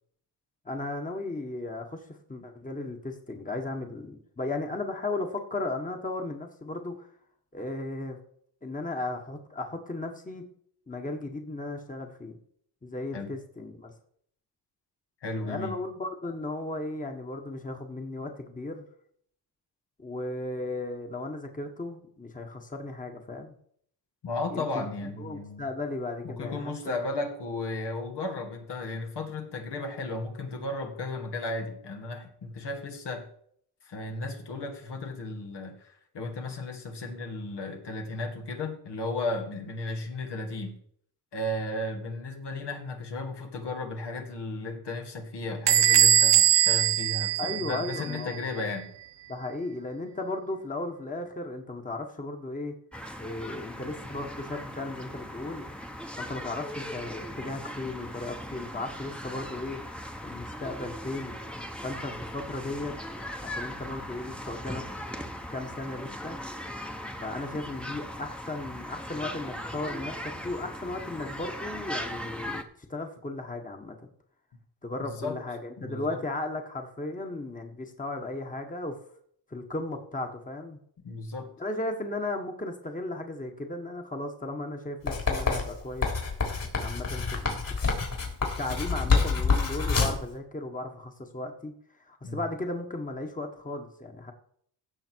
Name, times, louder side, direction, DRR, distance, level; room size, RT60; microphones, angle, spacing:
voice 1, 0.6-2.0 2.3-7.1 7.5-8.2 8.6-10.4 10.9-12.4 12.8-13.9 15.4-18.8 20.0-23.5 24.5-24.9 25.2-26.7 47.4-48.5 49.3-52.7 53.2-55.6 56.2-59.8 60.2-61.3 61.8-62.9 63.4-64.8 65.5-66.4 67.2-74.0 74.8-79.0 79.5-80.8 81.6-86.1 86.8-87.6 88.6-91.7 92.0-94.3, left 2 dB, 20° left, 4 dB, 1.6 m, -35 dB
voice 2, 15.2-15.8 24.2-25.7 26.2-33.3 33.8-40.8 41.3-48.9 75.0-75.4 75.8-76.2 81.0-81.5 92.2-92.4, left 2 dB, 70° left, 3 dB, 2.2 m, -34 dB
Bell / Door, 45.7-48.2, right 10 dB, 75° right, 1.0 m, -21 dB
sound 1, 52.9-72.6, equal, ahead, 1.1 m, -39 dB
Writing, 85.1-90.3, left 4 dB, 50° left, 3.9 m, -27 dB
16.0 x 6.4 x 4.7 m, 0.65 s
cardioid pair, 90°, 42 cm